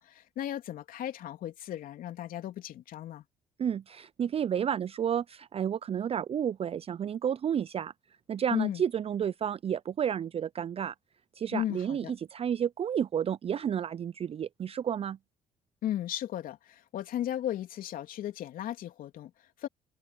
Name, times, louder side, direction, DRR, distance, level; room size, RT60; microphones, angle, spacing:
voice 1, 0.0-3.2 8.5-8.8 11.5-12.1 15.8-19.7, left 12 dB, 65° left, 3.3 m, -35 dB
voice 2, 3.6-7.9 8.3-10.9 11.3-15.2, right 8 dB, 40° right, 0.5 m, -31 dB
hypercardioid pair, 55°, 15 cm